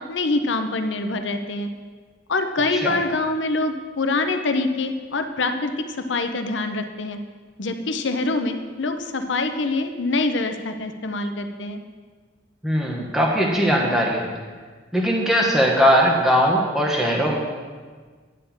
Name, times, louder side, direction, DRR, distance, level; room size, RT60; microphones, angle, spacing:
voice 1, 0.1-1.7 2.3-7.2 7.6-11.8, left 3 dB, 85° left, 7 dB, 0.7 m, -25 dB
voice 2, 12.6-14.3 14.9-17.4, equal, ahead, -2 dB, 1.1 m, -20 dB
10.5 x 4.3 x 7.1 m, 1.5 s
head